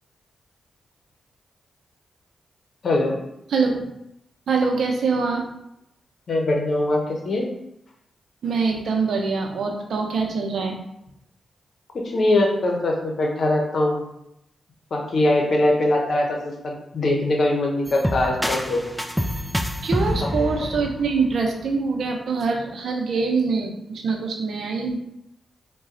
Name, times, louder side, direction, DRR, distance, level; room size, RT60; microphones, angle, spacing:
voice 1, 2.8-3.2 6.3-7.5 11.9-14.0 14.9-18.8 20.4-20.7, left 1 dB, 60° left, 1 dB, 0.9 m, -22 dB
voice 2, 3.5-3.8 4.5-5.5 8.4-10.8 19.8-25.0, right 4 dB, 75° right, 2 dB, 0.7 m, -24 dB
sound 1, 17.9-21.8, equal, ahead, 0.4 m, -27 dB
4.0 x 2.3 x 3.8 m, 0.81 s
supercardioid pair, 50°, 0 cm